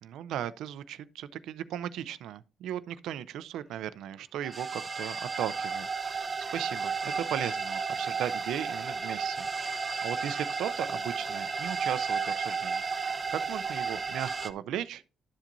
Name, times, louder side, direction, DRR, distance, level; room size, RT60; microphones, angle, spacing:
voice 1, 0.0-15.0, right 11 dB, 85° right, 0.5 m, -37 dB
sound 1, 4.4-14.5, right 5 dB, 30° right, 0.8 m, -33 dB
12.5 x 7.3 x 2.6 m
cardioid pair, 90°, 0 cm